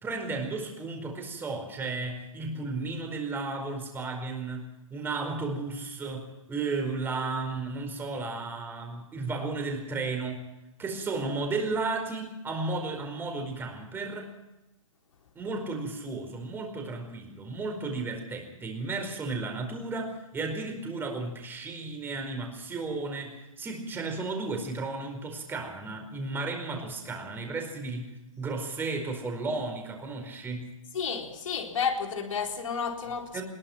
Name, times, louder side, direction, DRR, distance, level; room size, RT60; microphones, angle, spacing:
voice 1, 0.0-10.5 10.8-14.3 15.3-30.7 33.3-33.4, right 3 dB, 10° right, 4 dB, 4.7 m, -34 dB
voice 2, 30.9-33.4, left 6 dB, 70° left, 3 dB, 4.1 m, -31 dB
22.5 x 21.5 x 5.9 m, 0.98 s
hypercardioid pair, 140°, 17 cm